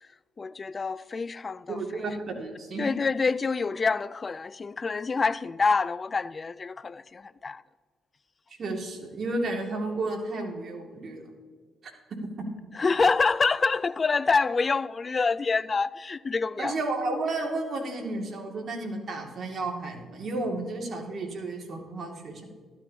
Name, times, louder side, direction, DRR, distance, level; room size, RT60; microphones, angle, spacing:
voice 1, 0.4-1.8 2.8-7.6 12.8-16.8, left 4 dB, 35° left, 0.3 m, -26 dB
voice 2, 1.7-2.9 8.6-11.3 16.6-22.4, right 2 dB, 55° right, 2.1 m, -32 dB
12.5 x 12.5 x 2.8 m
cardioid pair, 90°, 0 cm